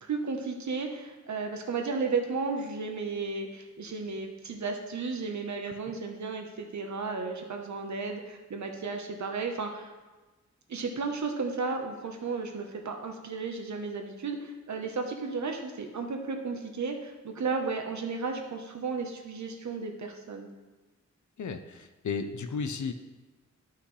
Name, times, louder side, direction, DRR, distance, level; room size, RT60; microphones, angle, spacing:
voice 1, 0.0-9.9 10.7-20.5, right 4 dB, 75° right, 4 dB, 1.1 m, -34 dB
voice 2, 21.4-22.9, left 5 dB, 80° left, 8 dB, 0.7 m, -34 dB
12.0 x 5.7 x 3.2 m, 1.2 s
wide cardioid pair, 115°, 29 cm